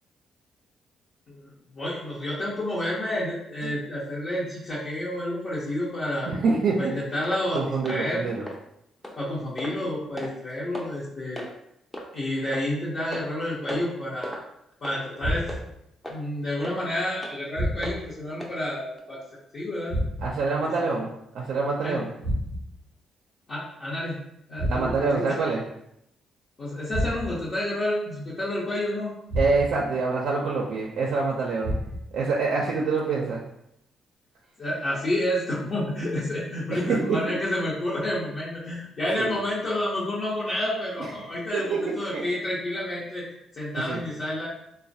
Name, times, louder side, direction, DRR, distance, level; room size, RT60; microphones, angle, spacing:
voice 1, 1.3-6.3 6.8-7.6 7.9-8.2 9.2-11.4 12.1-14.4 14.8-15.4 16.1-19.2 19.5-20.0 21.8-22.0 23.5-24.2 24.5-25.3 26.6-29.1 34.6-41.6 41.9-43.2 43.5-44.5, left 1 dB, 50° left, -8 dB, 0.7 m, -29 dB
voice 2, 6.2-6.9 7.5-8.4 20.2-21.1 21.3-22.1 24.6-25.6 29.4-31.7 32.1-33.4 36.7-37.4 39.1-39.4 41.0-42.2 43.8-44.0, right 4 dB, 70° right, -2 dB, 0.4 m, -26 dB
sound 1, 7.2-7.4 7.8-8.0 8.5-8.6 9.0-9.2 9.6-9.8 10.2-10.3 10.7-10.9 11.4-11.5 11.9-12.1 12.5-12.6 13.1-13.4 13.7-13.9 14.2-14.4 14.8-15.0 15.5-15.6 16.0-16.2 16.6-16.8 17.2-17.4 17.8-18.0 18.4-18.5 19.0-19.1, equal, 5° left, 0.5 m, -36 dB
sound 2, 15.2-15.8 17.5-18.2 19.9-20.5 22.2-22.9 24.6-25.2 26.9-27.5 29.3-29.9 31.6-32.2, equal, 85° left, 0.8 m, -30 dB
3.1 x 2.0 x 2.6 m, 0.78 s
cardioid pair, 90°, 0 cm